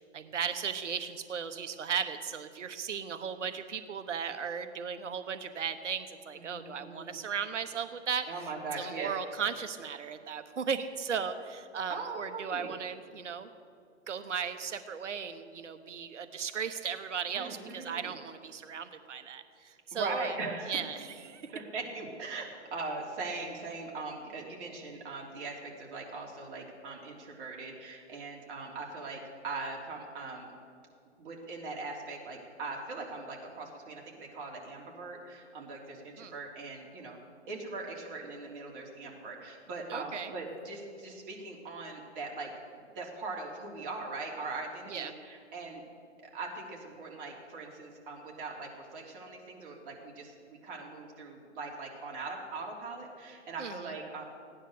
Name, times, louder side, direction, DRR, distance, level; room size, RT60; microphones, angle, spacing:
voice 1, 0.1-8.3 8.8-13.5 14.1-20.3 20.7-21.5 36.2-36.3 39.9-40.3 44.9-45.1 53.6-53.9, right 7 dB, 80° right, 10 dB, 1.1 m, -36 dB
voice 2, 6.3-7.2 8.3-9.1 11.9-12.7 17.3-18.1 19.9-20.8 21.5-30.5 31.2-37.2 37.5-45.8 46.2-54.2, right 3 dB, 45° right, -1 dB, 3.4 m, -40 dB
16.5 x 10.0 x 6.7 m, 2.4 s
hypercardioid pair, 135°, 36 cm